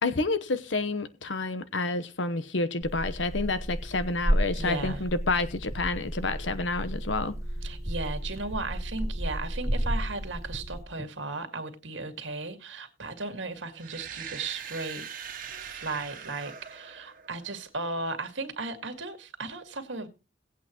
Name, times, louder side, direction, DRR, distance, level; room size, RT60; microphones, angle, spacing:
voice 1, 0.0-7.3, left 3 dB, 80° left, 1.0 m, -29 dB
sound 1, 2.8-10.8, equal, 15° right, 1.1 m, -32 dB
voice 2, 4.5-5.0 7.6-15.1 15.6-20.1, right 3 dB, 80° right, 2.0 m, -36 dB
sound 2, 13.7-17.7, right 7 dB, 50° right, 1.6 m, -42 dB
18.0 x 8.5 x 3.0 m
head